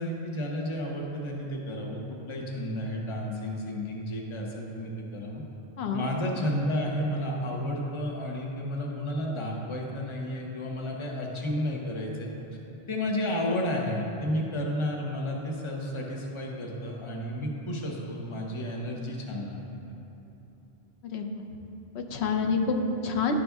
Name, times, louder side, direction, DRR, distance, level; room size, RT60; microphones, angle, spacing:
voice 1, 0.0-5.4 5.9-12.3 12.9-19.6 22.4-22.5, left 1 dB, 30° left, -1 dB, 0.8 m, -32 dB
voice 2, 21.9-23.3, left 4 dB, 75° left, 4 dB, 0.9 m, -27 dB
11.0 x 5.1 x 3.5 m, 2.9 s
omnidirectional pair, 1.1 m